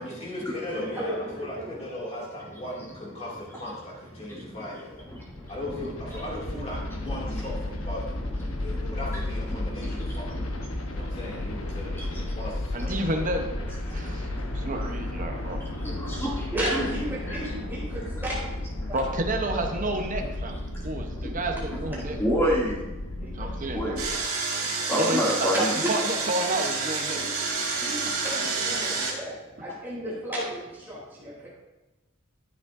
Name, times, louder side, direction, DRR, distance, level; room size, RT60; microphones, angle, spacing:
voice 1, 0.0-5.0 5.5-10.4 10.9-13.4, left 1 dB, 30° left, -5 dB, 2.5 m, -38 dB
voice 2, 0.6-1.7 16.5-18.6 18.9-19.2 19.5-19.9 21.5-22.0 23.2-24.0 25.0-26.1 27.1-27.3 27.8-31.5, right 1 dB, 10° right, -7 dB, 3.2 m, -34 dB
voice 3, 4.2-4.8 5.1-5.5 6.5-6.6 7.1-7.4 8.5-9.0 9.5-10.2 10.7-12.2 13.9-16.9 17.3-17.4 18.0-18.1 20.7-21.4 22.0-22.8 23.7-24.0 24.9-25.8, equal, 10° left, -5 dB, 2.5 m, -31 dB
sound 1, 4.7-24.1, left 1 dB, 65° left, 1.1 m, -33 dB
voice 4, 12.7-13.5 13.9-14.3 14.5-15.7 18.9-22.2 23.3-24.0 24.6-25.5 25.9-27.2 27.5-27.7, right 2 dB, 35° right, 3 dB, 1.0 m, -30 dB
Engine, 24.0-29.1, right 4 dB, 75° right, 2.2 m, -29 dB
12.5 x 7.9 x 2.7 m, 1.0 s
head